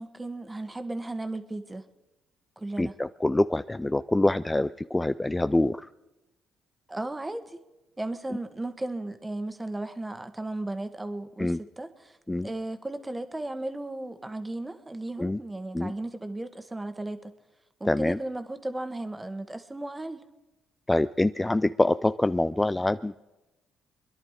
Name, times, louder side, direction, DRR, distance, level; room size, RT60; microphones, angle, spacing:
voice 1, 0.0-1.8 2.6-2.9 6.9-7.6 8.0-12.2 12.4-17.3 17.8-20.2, right 2 dB, 15° right, 9 dB, 1.6 m, -35 dB
voice 2, 2.8-5.9 11.4-11.6 12.3-12.5 15.2-15.4 15.7-15.9 17.8-18.2 20.9-23.2, left 2 dB, 15° left, 13 dB, 0.4 m, -25 dB
24.5 x 11.0 x 5.0 m, 1.0 s
supercardioid pair, 60°, 0 cm